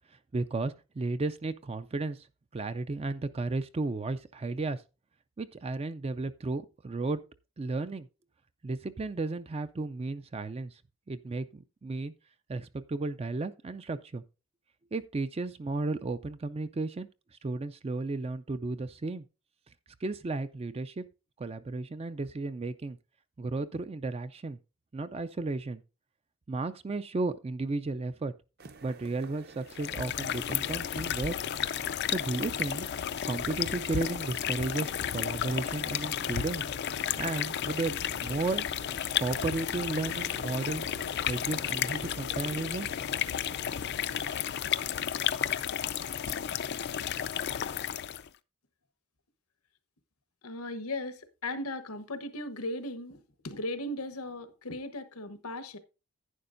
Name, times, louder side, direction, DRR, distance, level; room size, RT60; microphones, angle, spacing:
voice 1, 0.1-2.3 2.5-4.8 5.4-7.2 7.6-8.1 8.6-10.8 11.1-12.1 12.5-14.2 14.9-19.2 20.0-21.0 21.4-23.0 23.4-24.6 24.9-25.8 26.5-28.3 28.8-31.4 32.1-32.9 33.3-36.7 37.2-38.7 39.2-40.9 41.3-42.9, right 3 dB, 25° right, 0.4 m, -34 dB
sound 1, 28.6-44.3, right 3 dB, 45° right, 0.8 m, -51 dB
sound 2, 29.7-48.3, left 9 dB, 50° left, 0.4 m, -33 dB
sound 3, 41.6-43.1 45.2-47.3, right 8 dB, 75° right, 1.6 m, -60 dB
voice 2, 50.4-55.8, left 1 dB, 90° left, 1.2 m, -37 dB
11.0 x 9.5 x 2.6 m
head